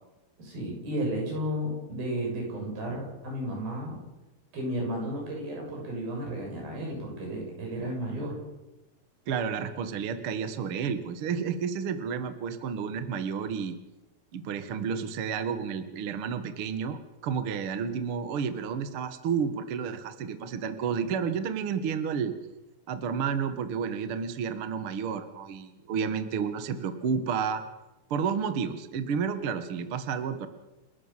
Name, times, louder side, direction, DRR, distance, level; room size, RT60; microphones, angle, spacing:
voice 1, 0.4-4.0 4.5-8.4, equal, 75° right, -1 dB, 9.1 m, -33 dB
voice 2, 9.3-13.8 14.3-22.3 22.9-27.6 28.1-30.5, right 6 dB, 55° right, 9 dB, 1.6 m, -31 dB
29.5 x 12.0 x 7.4 m, 1.0 s
omnidirectional pair, 4.3 m